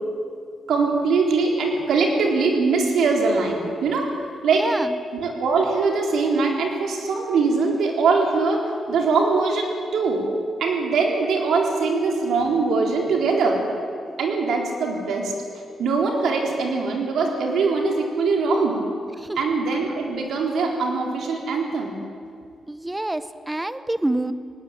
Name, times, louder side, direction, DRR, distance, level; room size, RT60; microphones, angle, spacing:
voice 1, 0.7-4.1 4.4-4.7 5.1-10.3 10.6-13.7 14.2-15.3 15.8-18.8 19.4-22.0, right 4 dB, 75° right, 1 dB, 4.0 m, -22 dB
voice 2, 4.5-5.0 19.2-19.4 22.7-24.3, right 1 dB, 10° right, 13 dB, 0.8 m, -27 dB
20.0 x 17.5 x 8.8 m, 2.2 s
wide cardioid pair, 145°, 0 cm